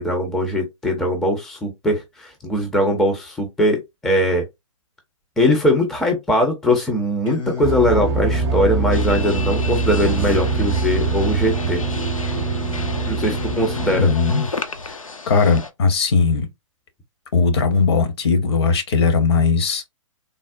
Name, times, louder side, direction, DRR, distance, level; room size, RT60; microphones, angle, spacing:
voice 1, 0.0-4.4 5.4-11.8 13.1-14.1, equal, ahead, 0.4 m, -20 dB
Singing, 7.3-14.5, left 6 dB, 70° left, 1.5 m, -31 dB
sound 1, 7.6-14.1, right 5 dB, 50° right, 0.5 m, -23 dB
sound 2, 8.9-15.7, left 4 dB, 90° left, 0.5 m, -34 dB
voice 2, 14.0-14.5 14.8-15.0 15.3-16.5 17.3-19.9, left 4 dB, 50° left, 0.8 m, -18 dB
3.4 x 2.0 x 2.4 m
figure-of-eight pair, 125°, 17 cm